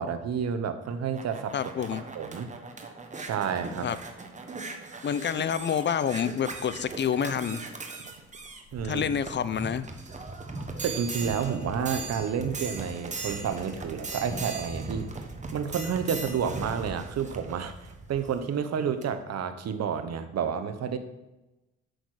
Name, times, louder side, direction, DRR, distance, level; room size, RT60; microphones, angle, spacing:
voice 1, 0.0-1.6 2.1-2.5 3.2-3.9 8.0-8.1 8.7-9.1 10.3-10.4 10.8-15.1 15.5-21.0, right 7 dB, 60° right, 9 dB, 1.0 m, -30 dB
sound 1, 0.8-18.5 19.0-19.1, right 3 dB, 25° right, 1.2 m, -39 dB
voice 2, 1.5-2.0 3.8-4.0 5.0-7.6 8.8-9.9, left 8 dB, 40° left, 15 dB, 0.5 m, -28 dB
8.1 x 6.5 x 4.8 m, 1.0 s
cardioid pair, 90°, 30 cm